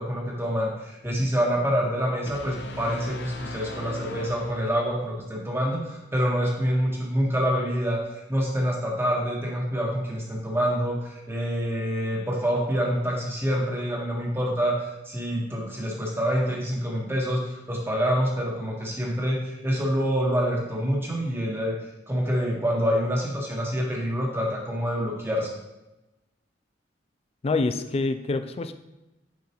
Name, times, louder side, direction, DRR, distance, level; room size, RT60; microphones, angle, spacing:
voice 1, 0.0-21.7 22.1-25.5, equal, 15° right, -2 dB, 1.4 m, -26 dB
sound 1, 2.3-5.2, left 1 dB, 75° left, 0.8 m, -39 dB
voice 2, 27.4-28.7, left 3 dB, 35° left, 9 dB, 0.4 m, -26 dB
6.6 x 5.7 x 3.0 m, 0.99 s
head